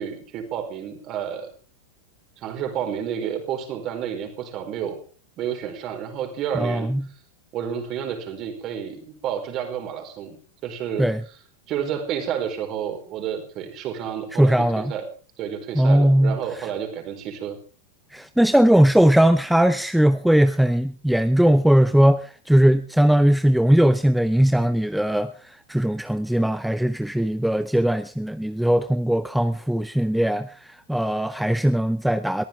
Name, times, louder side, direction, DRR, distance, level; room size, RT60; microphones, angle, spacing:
voice 1, 0.0-1.5 2.4-5.0 5.4-6.9 7.5-10.4 10.6-11.1 11.7-15.0 15.4-17.6, right 8 dB, 35° right, 5 dB, 4.6 m, -30 dB
voice 2, 6.5-7.0 11.0-11.2 14.4-14.9 15.7-16.4 18.1-32.4, right 1 dB, ahead, 12 dB, 0.7 m, -19 dB
22.0 x 15.0 x 3.6 m, 0.39 s
figure-of-eight pair, 90°, 0 cm